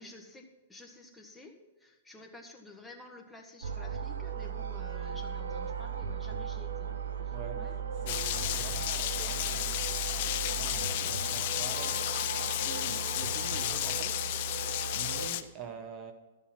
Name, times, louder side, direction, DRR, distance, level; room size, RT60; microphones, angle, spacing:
voice 1, 0.0-6.9 7.2-7.7, left 3 dB, 5° left, 1.5 m, -51 dB
sound 1, 3.6-15.3, right 6 dB, 90° right, 0.8 m, -37 dB
sound 2, 4.5-13.2, left 5 dB, 70° left, 1.7 m, -56 dB
voice 2, 7.3-9.8 10.4-14.4 14.9-16.1, right 6 dB, 35° right, 1.0 m, -46 dB
Rain, 8.1-15.4, left 14 dB, 55° left, 0.6 m, -33 dB
12.5 x 7.2 x 5.9 m
hypercardioid pair, 140°, 0 cm